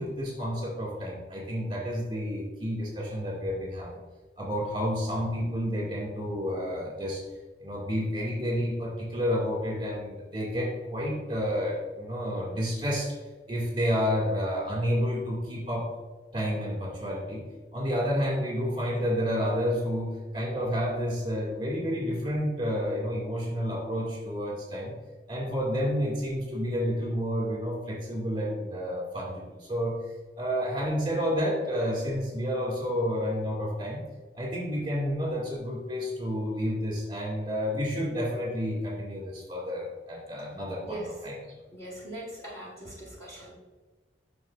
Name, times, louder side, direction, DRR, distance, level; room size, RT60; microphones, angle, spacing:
voice 1, 0.0-4.0 4.4-7.2 7.6-13.2 13.5-15.9 16.3-17.4 17.7-24.9 25.3-30.0 30.4-34.0 34.3-41.5, equal, 25° right, -3 dB, 2.2 m, -30 dB
voice 2, 40.8-41.3 41.7-43.5, right 1 dB, 15° left, -4 dB, 1.7 m, -41 dB
9.3 x 5.7 x 2.5 m, 1.2 s
head